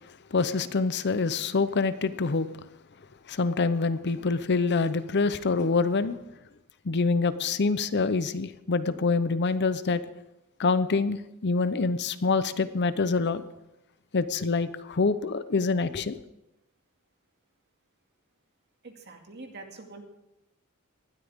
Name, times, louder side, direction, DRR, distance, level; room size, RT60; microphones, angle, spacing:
voice 1, 0.3-2.5 3.3-6.2 6.9-10.0 10.6-13.4 14.1-16.2, left 4 dB, 55° left, 0.7 m, -26 dB
voice 2, 18.8-20.0, right 3 dB, 50° right, 2.3 m, -44 dB
19.0 x 12.5 x 3.6 m
head